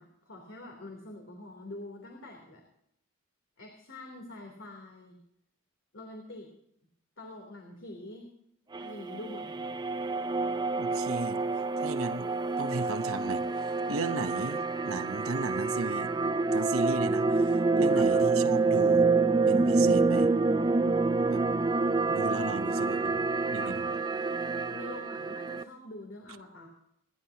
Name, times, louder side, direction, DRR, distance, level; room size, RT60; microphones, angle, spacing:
voice 1, 0.0-2.6 3.6-5.2 5.9-6.5 7.2-8.3 8.8-9.8 17.9-18.2 22.6-24.0 24.7-26.7, left 1 dB, 60° left, 3.3 m, -45 dB
sound 1, 8.7-25.6, right 3 dB, 20° right, 0.5 m, -27 dB
voice 2, 10.8-11.4 11.8-12.3 12.6-16.1 16.5-19.1 19.5-20.3 21.3-21.4 22.1-23.1 23.5-23.8, right 3 dB, 80° right, 1.0 m, -36 dB
29.5 x 11.0 x 2.9 m
head